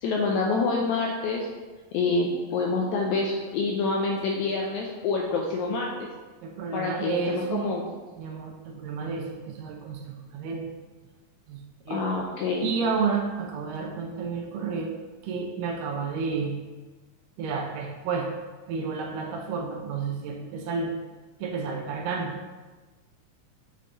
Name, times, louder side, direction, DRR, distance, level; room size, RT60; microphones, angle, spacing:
voice 1, 0.0-1.5 1.9-6.1 6.7-7.9 11.9-12.7, left 3 dB, 85° left, -1 dB, 1.7 m, -27 dB
voice 2, 6.4-7.7 8.2-10.7 11.5-11.6 11.9-12.0 12.6-15.0 15.2-16.5 17.4-18.3 18.7-20.9 21.4-22.3, right 5 dB, 80° right, 1 dB, 2.2 m, -31 dB
6.4 x 5.3 x 2.8 m, 1.3 s
omnidirectional pair, 3.8 m